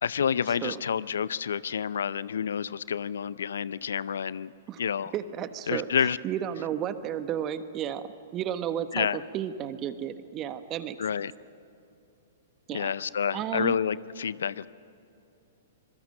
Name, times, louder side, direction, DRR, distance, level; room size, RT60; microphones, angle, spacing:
voice 1, 0.0-4.5 4.8-5.1 5.7-6.2 8.9-9.2 11.0-11.3 12.7-14.7, left 7 dB, 70° left, 20 dB, 0.5 m, -29 dB
voice 2, 5.1-11.0 12.7-12.9 13.3-13.8, right 10 dB, 30° right, 11 dB, 1.2 m, -33 dB
25.5 x 22.0 x 6.5 m, 2.7 s
figure-of-eight pair, 110°, 0 cm